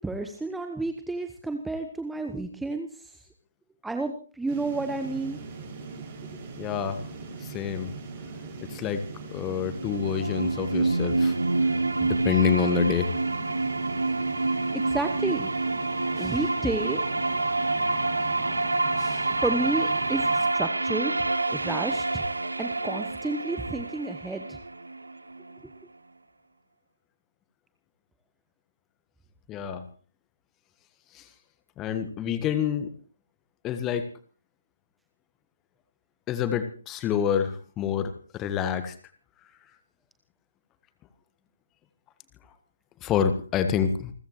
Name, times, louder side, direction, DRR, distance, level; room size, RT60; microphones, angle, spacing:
voice 1, 0.0-3.1 3.8-5.4 14.7-15.5 16.2-17.0 19.4-22.2 22.6-24.6, right 2 dB, 5° right, 6 dB, 1.0 m, -31 dB
sound 1, 4.5-20.4, right 4 dB, 30° right, 6.0 m, -41 dB
voice 2, 6.6-7.0 7.4-7.9 8.7-9.0 9.3-11.3 12.0-13.1 16.2-16.3 19.0-19.2 29.5-29.8 31.1-31.2 31.8-32.9 33.6-34.1 36.3-38.9 43.0-44.1, left 8 dB, 15° left, 10 dB, 1.5 m, -27 dB
sound 2, 9.6-25.6, right 2 dB, 75° right, 1.0 m, -27 dB
29.0 x 14.5 x 3.1 m, 0.39 s
figure-of-eight pair, 135°, 0 cm